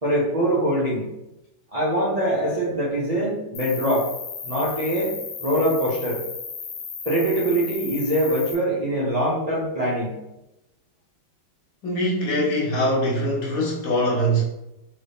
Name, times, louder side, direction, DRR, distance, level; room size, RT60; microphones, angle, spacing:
voice 1, 0.0-1.1 1.7-4.1 4.4-6.2 7.0-10.2, right 1 dB, 80° right, -7 dB, 0.3 m, -23 dB
Cricket, 3.5-8.5, left 6 dB, 90° left, 1.3 m, -35 dB
voice 2, 11.8-14.4, equal, 60° left, -3 dB, 1.1 m, -22 dB
3.0 x 2.6 x 3.4 m, 0.91 s
omnidirectional pair, 1.9 m